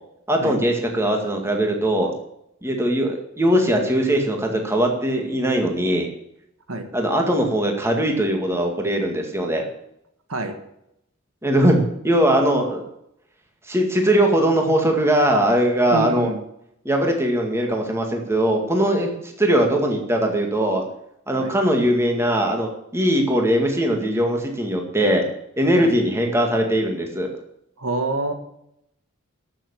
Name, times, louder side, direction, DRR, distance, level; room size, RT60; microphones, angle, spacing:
voice 1, 0.3-2.1 2.6-6.1 6.9-9.6 11.4-12.8 13.7-16.3 16.8-20.8 21.3-25.2 25.6-27.3, right 1 dB, 10° right, 2 dB, 2.1 m, -20 dB
voice 2, 15.9-16.4 21.4-21.6 25.8-26.0 27.8-28.3, right 2 dB, 80° right, 6 dB, 1.8 m, -26 dB
14.0 x 7.0 x 7.2 m, 0.78 s
head